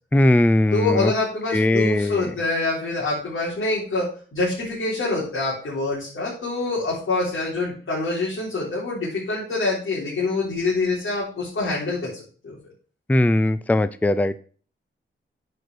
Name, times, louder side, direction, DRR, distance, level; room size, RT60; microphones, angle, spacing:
voice 1, 0.1-1.1 1.5-2.3 13.1-14.4, left 1 dB, 5° left, 14 dB, 0.4 m, -19 dB
voice 2, 0.7-12.6, left 3 dB, 75° left, -6 dB, 3.7 m, -26 dB
9.5 x 5.0 x 6.1 m, 0.42 s
wide cardioid pair, 125°, 21 cm